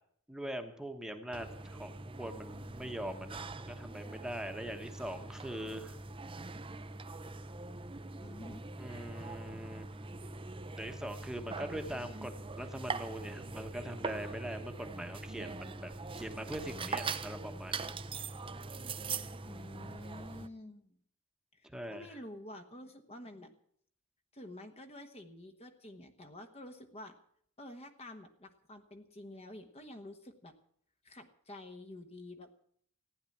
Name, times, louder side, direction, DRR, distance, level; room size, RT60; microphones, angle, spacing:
voice 1, 0.3-6.0 8.8-10.2 10.8-18.0 21.7-22.2, equal, 5° right, 5 dB, 1.2 m, -42 dB
sound 1, 1.3-20.5, right 4 dB, 25° right, 0.6 m, -42 dB
voice 2, 8.2-8.6 19.4-21.0 21.5-23.6 24.3-27.2 27.6-30.5 31.0-32.5, left 1 dB, 30° left, 6 dB, 1.2 m, -49 dB
15.5 x 9.9 x 8.5 m, 0.65 s
head